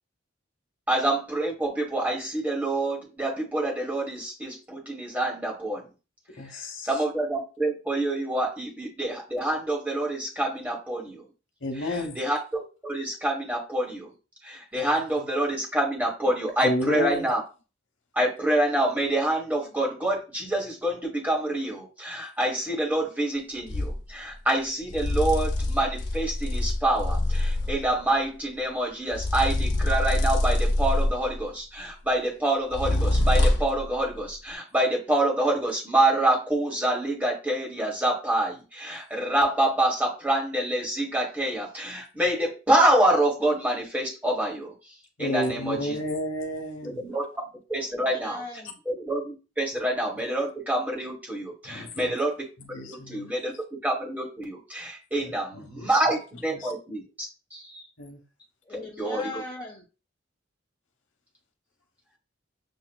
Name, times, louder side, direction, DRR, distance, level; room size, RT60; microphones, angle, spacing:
voice 1, 0.9-5.9 6.8-11.3 11.8-14.1 14.4-17.4 18.1-44.7 45.2-46.0 46.8-47.2 47.7-48.4 48.8-52.4 52.9-53.5 53.8-57.0 57.5-57.8 59.0-59.4, right 1 dB, 10° right, 1.3 m, -27 dB
voice 2, 6.4-6.9 11.6-12.2 16.6-17.3 45.2-47.0 51.6-52.1 52.7-53.3 55.5-55.9 56.5-56.7 58.0-58.2, left 1 dB, 80° left, 1.0 m, -31 dB
sound 1, 23.7-24.0 24.9-27.9 29.1-31.4 32.7-33.8, left 1 dB, 60° left, 0.5 m, -25 dB
voice 3, 47.9-48.7 58.6-59.8, left 2 dB, 20° left, 1.1 m, -39 dB
7.1 x 2.4 x 2.2 m
head